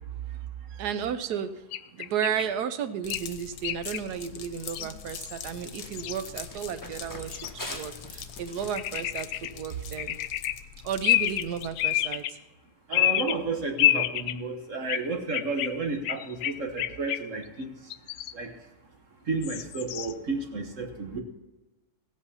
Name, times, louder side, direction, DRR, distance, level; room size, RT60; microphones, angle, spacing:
voice 1, 0.7-1.6 1.9-10.2 10.8-12.4, right 8 dB, 85° right, 11 dB, 1.3 m, -33 dB
sound 1, 1.7-2.5 3.1-3.2 3.6-4.0 4.7-4.9 5.1-5.4 6.0-6.4 7.3-7.5 8.7-9.5 10.0-10.5 11.0-12.3 12.9-13.4 13.8-14.3 14.9-15.0 15.3-17.4 17.9-18.3 19.4-20.1, left 13 dB, 90° left, 1.2 m, -28 dB
sound 2, 3.0-12.2, left 8 dB, 70° left, 1.4 m, -44 dB
Run, 5.1-10.3, left 1 dB, 15° left, 1.3 m, -45 dB
voice 2, 12.9-17.7 18.3-18.5 19.3-21.2, right 3 dB, 55° right, 4 dB, 1.5 m, -32 dB
16.5 x 8.5 x 5.5 m, 1.1 s
omnidirectional pair, 1.7 m